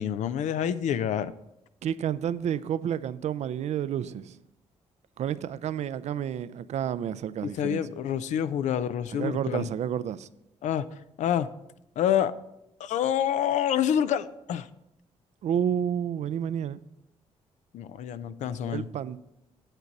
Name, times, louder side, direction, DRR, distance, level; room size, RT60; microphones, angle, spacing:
voice 1, 0.0-1.3 7.4-9.7 10.6-10.9 11.2-11.5 12.0-12.3 12.8-14.7 17.7-18.9, left 9 dB, 80° left, 0.5 m, -27 dB
voice 2, 1.8-4.4 5.2-7.8 9.1-10.3 15.4-16.8 18.6-19.2, right 9 dB, 70° right, 0.4 m, -30 dB
9.0 x 8.1 x 4.0 m
cardioid pair, 70°, 12 cm